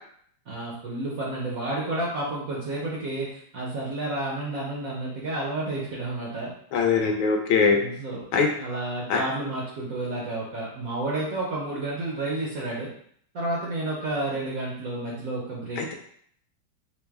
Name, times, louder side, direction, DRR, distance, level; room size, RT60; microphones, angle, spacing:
voice 1, 0.5-6.5 7.7-8.2 8.6-12.9 13.3-15.9, right 2 dB, 70° right, -4 dB, 0.8 m, -31 dB
voice 2, 6.7-7.8 8.3-8.5 9.1-9.2 15.8-15.9, left 5 dB, 75° left, 3 dB, 1.3 m, -21 dB
4.8 x 2.0 x 3.4 m, 0.64 s
omnidirectional pair, 2.3 m